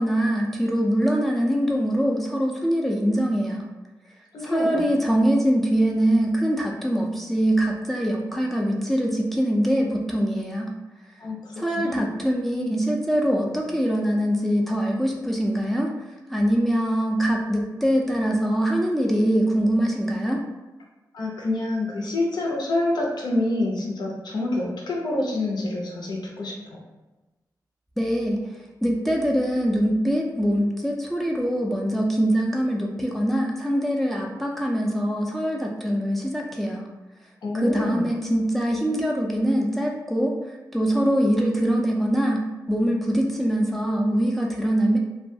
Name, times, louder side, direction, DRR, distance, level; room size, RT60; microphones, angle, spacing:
voice 1, 0.0-3.7 4.4-10.7 11.6-16.0 16.3-20.5 28.0-28.4 28.8-36.8 37.5-45.0, equal, 5° left, -1 dB, 0.3 m, -23 dB
voice 2, 4.3-4.9 11.2-12.1 21.1-26.8 37.4-38.2, left 2 dB, 80° left, -1 dB, 0.6 m, -27 dB
2.3 x 2.2 x 2.6 m, 1.1 s
wide cardioid pair, 105°, 7 cm